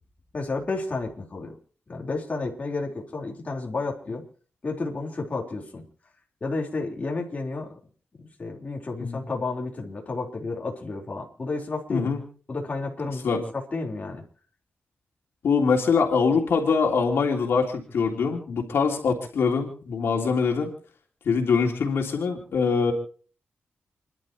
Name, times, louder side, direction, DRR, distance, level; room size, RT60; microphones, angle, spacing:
voice 1, 0.3-1.5 1.9-4.2 4.6-5.8 6.4-7.7 8.2-12.1 12.5-14.2, left 3 dB, 40° left, 0 dB, 3.8 m, -31 dB
voice 2, 11.9-12.2 13.2-13.4 15.4-20.7 21.2-22.9, left 5 dB, 90° left, 2 dB, 3.2 m, -23 dB
30.0 x 11.5 x 3.0 m, 0.42 s
wide cardioid pair, 105°, 4 cm